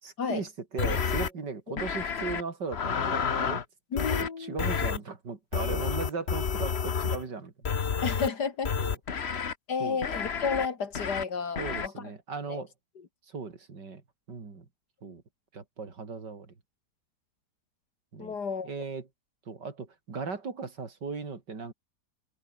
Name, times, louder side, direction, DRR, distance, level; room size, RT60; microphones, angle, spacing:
voice 1, 0.0-3.6 4.1-7.5 8.8-9.0 9.8-10.0 11.6-12.7 13.3-14.0 14.3-14.7 15.0-15.2 15.5-16.5 18.1-18.4 18.6-19.1 19.5-21.7, right 4 dB, 85° right, 3.7 m, -37 dB
sound 1, 0.8-1.3 1.8-2.4 2.7-3.6 4.0-4.3 4.6-5.0 5.5-7.2 7.6-8.3 8.6-9.5 10.0-10.7 10.9-11.2 11.6-11.9, left 6 dB, 40° left, 1.4 m, -30 dB
voice 2, 3.9-4.6 8.0-8.7 9.7-12.0 12.5-12.6 18.2-18.7, left 5 dB, 75° left, 2.8 m, -32 dB
omnidirectional pair, 1.8 m